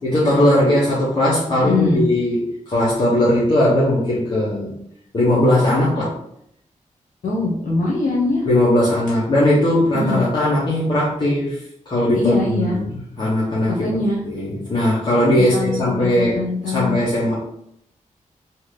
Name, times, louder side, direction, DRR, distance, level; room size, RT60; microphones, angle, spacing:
voice 1, 0.0-4.7 5.1-6.2 8.5-11.6 11.9-12.9 13.2-13.8 14.2-16.4 16.7-17.3, left 1 dB, 35° left, -9 dB, 0.7 m, -18 dB
voice 2, 1.6-2.0 7.2-8.5 9.9-10.3 12.1-12.8 13.7-14.2 15.4-17.0, left 3 dB, 75° left, -3 dB, 0.8 m, -22 dB
2.7 x 2.4 x 3.2 m, 0.72 s
wide cardioid pair, 160°, 14 cm